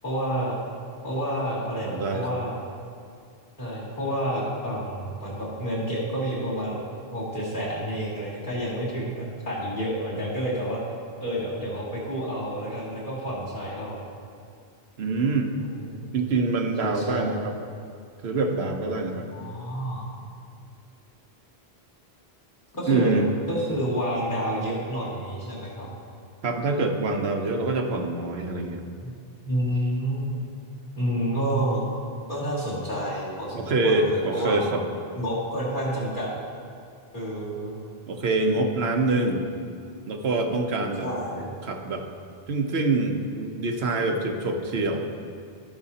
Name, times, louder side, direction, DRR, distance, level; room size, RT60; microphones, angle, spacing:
voice 1, 0.0-0.5 1.0-2.6 3.6-6.8 7.1-10.8 11.2-14.0 15.6-16.2 16.8-17.3 19.3-20.1 22.7-23.1 23.5-25.9 29.0-29.1 29.4-30.4 31.0-31.8 32.3-34.6 35.1-36.3 37.1-37.8 41.0-41.5, equal, 50° left, -8 dB, 2.8 m, -29 dB
voice 2, 1.8-2.2 15.0-15.5 16.1-17.5 18.2-19.2 22.9-23.3 26.4-28.8 33.5-34.8 38.1-39.4 40.1-41.1 41.6-42.0 42.5-45.1, right 3 dB, 80° right, 3 dB, 1.1 m, -25 dB
18.0 x 6.1 x 2.8 m, 2.3 s
omnidirectional pair, 1.1 m